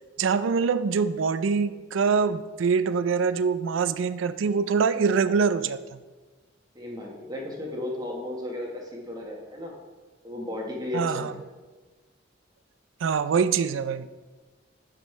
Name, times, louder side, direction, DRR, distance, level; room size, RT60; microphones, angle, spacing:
voice 1, 0.2-6.0 10.9-11.3 13.0-14.1, right 5 dB, 90° right, 13 dB, 0.4 m, -24 dB
voice 2, 6.7-9.7 10.2-11.3, left 1 dB, 20° right, -1 dB, 1.3 m, -34 dB
11.0 x 5.2 x 3.2 m, 1.3 s
head